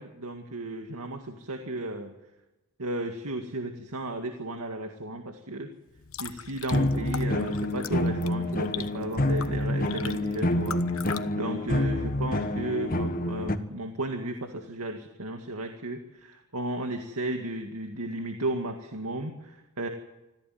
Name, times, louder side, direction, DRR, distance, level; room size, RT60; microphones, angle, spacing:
voice 1, 0.0-2.1 2.8-5.7 6.2-19.9, right 1 dB, 80° right, 4 dB, 2.1 m, -34 dB
sound 1, 5.9-11.2, left 8 dB, 65° left, 1.2 m, -41 dB
sound 2, 6.7-13.6, left 1 dB, 40° left, 1.4 m, -28 dB
25.5 x 16.0 x 9.3 m, 1.0 s
head